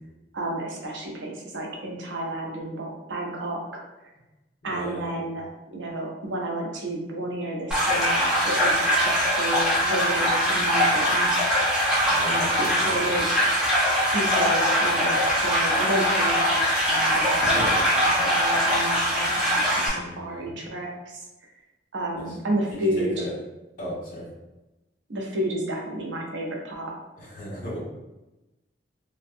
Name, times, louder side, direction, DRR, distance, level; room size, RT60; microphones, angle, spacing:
voice 1, 0.3-3.8 4.6-11.3 12.1-13.7 14.1-21.2 21.9-23.3 25.1-26.9, right 1 dB, 75° right, -1 dB, 0.6 m, -31 dB
voice 2, 4.6-5.2 12.1-13.0 19.9-20.5 22.2-22.3 22.7-23.3 23.8-24.3 27.2-27.8, equal, 50° left, -7 dB, 1.3 m, -36 dB
sound 1, 7.7-19.9, equal, 5° right, 0.6 m, -22 dB
2.5 x 2.1 x 2.5 m, 1.0 s
head